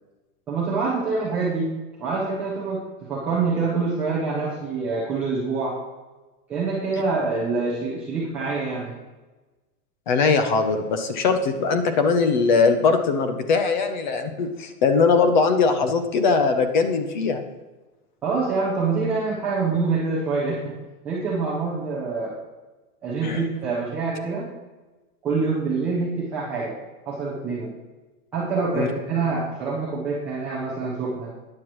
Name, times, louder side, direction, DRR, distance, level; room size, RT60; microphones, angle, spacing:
voice 1, 0.5-1.7 2.0-5.8 6.5-8.9 18.2-20.8 21.0-22.3 23.0-24.5 25.2-26.7 27.1-27.7 28.3-31.3, right 4 dB, 5° right, -10 dB, 0.5 m, -26 dB
voice 2, 10.1-17.4 23.2-23.4 28.7-28.9, left 4 dB, 30° left, 8 dB, 0.7 m, -21 dB
13.5 x 9.7 x 3.1 m, 1.2 s
supercardioid pair, 180°, 45 cm